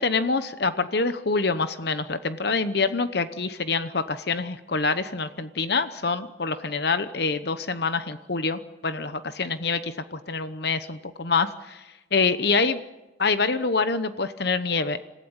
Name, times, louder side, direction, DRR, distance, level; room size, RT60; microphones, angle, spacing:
voice 1, 0.0-12.8 13.2-15.1, left 4 dB, 60° left, 11 dB, 0.9 m, -26 dB
27.0 x 16.5 x 8.9 m, 1.0 s
head